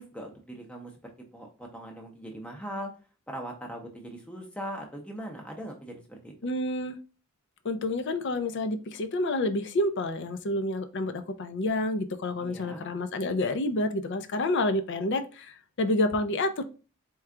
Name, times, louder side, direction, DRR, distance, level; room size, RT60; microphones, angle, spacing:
voice 1, 0.0-2.9 3.3-6.3 12.4-12.9, equal, 5° left, 0.6 m, -40 dB
voice 2, 6.4-7.0 7.6-16.6, left 2 dB, 55° left, 0.5 m, -29 dB
4.4 x 2.3 x 3.6 m
head